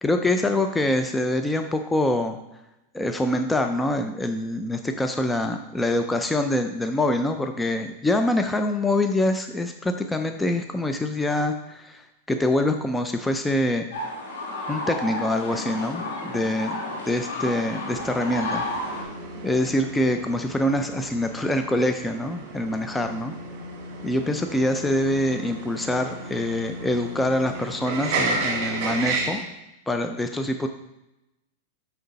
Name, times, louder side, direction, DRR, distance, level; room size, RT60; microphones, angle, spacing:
voice 1, 0.0-2.4 2.9-12.0 12.3-13.9 14.7-18.6 19.4-23.3 24.0-29.4 29.9-30.7, left 1 dB, 10° left, 6 dB, 0.5 m, -25 dB
sound 1, 13.9-19.0, left 1 dB, 75° left, 2.5 m, -32 dB
sound 2, 17.9-29.4, right 3 dB, 50° right, 2.0 m, -33 dB
6.5 x 5.5 x 4.1 m, 0.92 s
hypercardioid pair, 120°, 0 cm